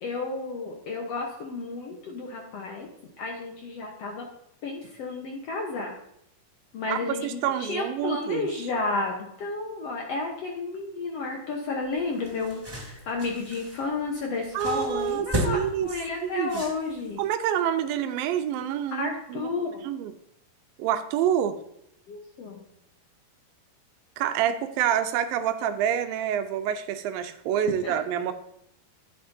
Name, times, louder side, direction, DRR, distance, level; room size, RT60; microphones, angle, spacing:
voice 1, 0.0-2.9 3.2-4.3 4.6-5.9 6.7-17.2 18.9-19.8 22.1-22.6 27.8-28.0, left 3 dB, 70° left, 1 dB, 1.5 m, -32 dB
voice 2, 6.9-8.5 14.5-15.9 16.2-16.6 17.2-19.5 19.8-20.1 20.8-21.6 24.2-28.3, right 10 dB, 80° right, 9 dB, 2.4 m, -27 dB
sound 1, 11.8-17.3, right 1 dB, 10° right, 1.8 m, -35 dB
10.5 x 8.5 x 2.7 m, 0.80 s
omnidirectional pair, 4.2 m